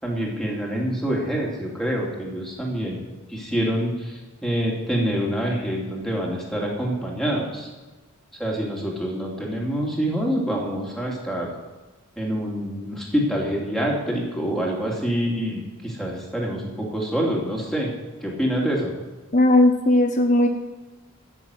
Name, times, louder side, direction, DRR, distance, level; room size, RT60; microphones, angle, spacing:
voice 1, 0.0-3.0 3.3-7.7 8.4-11.5 12.2-17.9 18.2-18.9, equal, ahead, -3 dB, 2.7 m, -26 dB
voice 2, 19.3-20.5, left 1 dB, 35° left, 4 dB, 1.2 m, -17 dB
14.0 x 6.8 x 8.0 m, 1.2 s
head